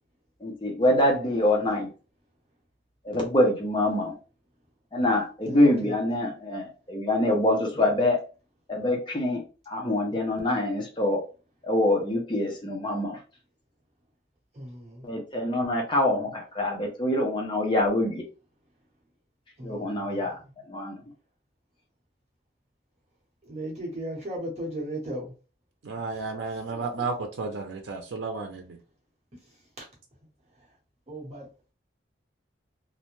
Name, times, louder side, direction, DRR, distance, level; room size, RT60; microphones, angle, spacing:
voice 1, 0.4-1.9 3.0-4.1 4.9-8.2 8.7-9.4 9.7-11.2 11.6-13.2 15.0-18.2 19.6-20.4 20.7-21.0, left 1 dB, 25° left, 1 dB, 0.5 m, -25 dB
voice 2, 5.4-5.9 7.7-8.0 14.5-15.0 19.6-20.3 23.4-25.3 26.7-26.8 29.8-29.9 31.1-31.5, right 1 dB, 35° right, -4 dB, 0.9 m, -36 dB
voice 3, 25.8-28.8, right 4 dB, 85° right, 4 dB, 0.5 m, -33 dB
2.5 x 2.1 x 3.0 m, 0.33 s
head